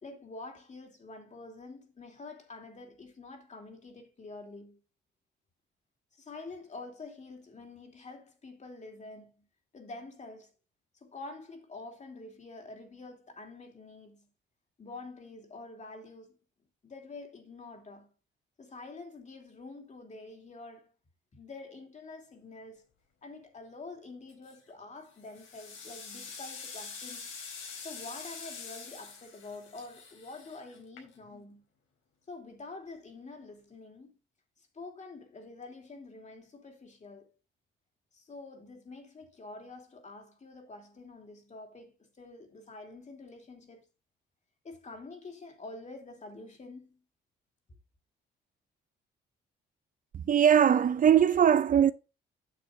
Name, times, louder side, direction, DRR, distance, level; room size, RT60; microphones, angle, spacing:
voice 1, 0.0-4.8 6.1-9.4 9.7-10.5 11.0-14.3 14.8-16.3 16.8-18.1 18.6-20.9 21.3-22.8 23.2-27.3 27.8-31.6 32.3-34.1 34.7-37.3 38.1-43.9 44.6-47.0, left 3 dB, 35° left, 3.1 m, -47 dB
sound 1, 24.3-24.7 25.2-31.4, left 5 dB, 80° left, 4.4 m, -45 dB
voice 2, 50.1-51.9, right 9 dB, 45° right, 0.5 m, -21 dB
9.1 x 7.0 x 3.9 m
cardioid pair, 90°, 20 cm